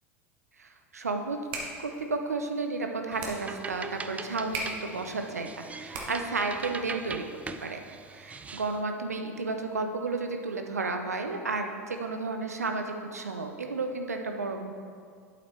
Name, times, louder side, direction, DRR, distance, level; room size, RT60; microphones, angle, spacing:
voice 1, 0.6-1.4 1.8-7.3 7.6-14.7, right 3 dB, 90° right, 5 dB, 0.7 m, -32 dB
sound 1, 1.2-6.5, right 2 dB, 55° right, 1.5 m, -41 dB
sound 2, 3.1-8.8, right 4 dB, 15° right, 0.4 m, -41 dB
8.3 x 8.0 x 3.3 m, 2.2 s
hypercardioid pair, 80°, 8 cm